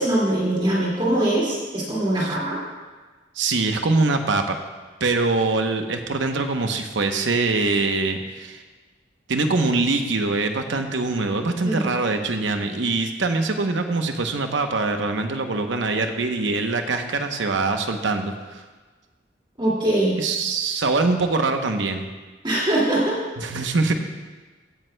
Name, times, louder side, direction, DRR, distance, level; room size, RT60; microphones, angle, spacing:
voice 1, 0.0-2.6 11.6-11.9 19.6-20.1 22.4-23.2 23.5-23.6, right 1 dB, 25° right, -6 dB, 2.2 m, -22 dB
voice 2, 3.4-4.6 5.0-8.6 9.3-18.6 20.2-22.1 23.4-23.9, right 3 dB, 80° right, 5 dB, 0.8 m, -23 dB
15.5 x 9.6 x 2.2 m, 1.3 s
head